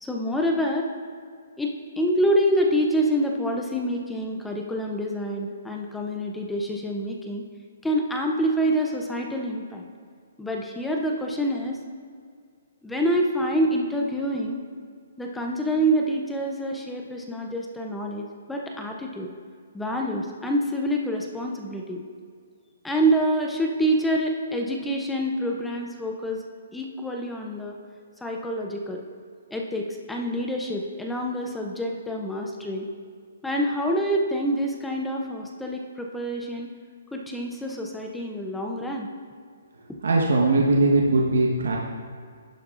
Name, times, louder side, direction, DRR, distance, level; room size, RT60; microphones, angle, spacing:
voice 1, 0.0-0.9 1.6-7.4 7.8-9.8 10.4-11.8 12.8-14.6 15.2-19.3 19.7-22.0 22.8-26.4 26.7-27.7 28.2-29.0 29.5-32.9 33.4-36.7 37.1-39.1, equal, 5° left, 1 dB, 0.5 m, -26 dB
voice 2, 40.0-41.8, right 2 dB, 90° right, -1 dB, 1.2 m, -20 dB
11.0 x 10.5 x 2.5 m, 2.1 s
hypercardioid pair, 170°, 0 cm